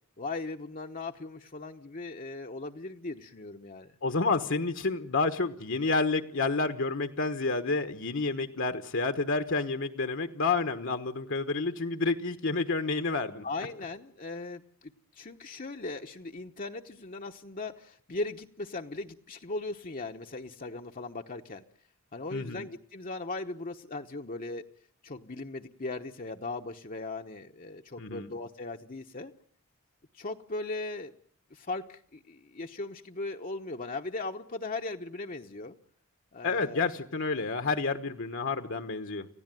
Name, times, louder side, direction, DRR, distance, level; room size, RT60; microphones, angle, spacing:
voice 1, 0.2-3.9 13.4-21.6 22.1-24.6 25.0-29.3 30.1-31.2 31.5-35.8 36.3-36.9, left 3 dB, 40° left, 4 dB, 1.0 m, -38 dB
voice 2, 4.0-13.4 22.3-22.6 28.0-28.3 36.4-39.3, left 3 dB, 60° left, 8 dB, 1.3 m, -29 dB
29.0 x 16.5 x 9.2 m, 0.62 s
head